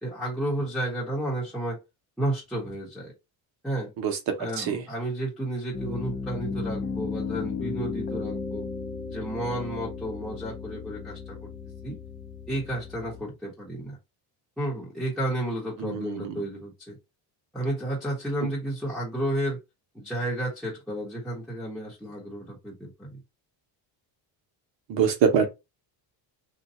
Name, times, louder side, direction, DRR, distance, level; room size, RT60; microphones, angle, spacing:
voice 1, 0.0-1.8 2.2-3.1 3.6-3.9 4.4-8.7 9.1-11.5 11.8-12.0 12.5-14.0 14.6-17.0 17.5-19.6 19.9-23.2, right 1 dB, ahead, 1.0 m, -32 dB
Piano, 5.7-13.2, left 5 dB, 25° left, 0.5 m, -35 dB
voice 2, 15.8-16.3 24.9-25.5, right 7 dB, 75° right, 1.1 m, -24 dB
2.8 x 2.2 x 4.1 m
cardioid pair, 140°, 45 cm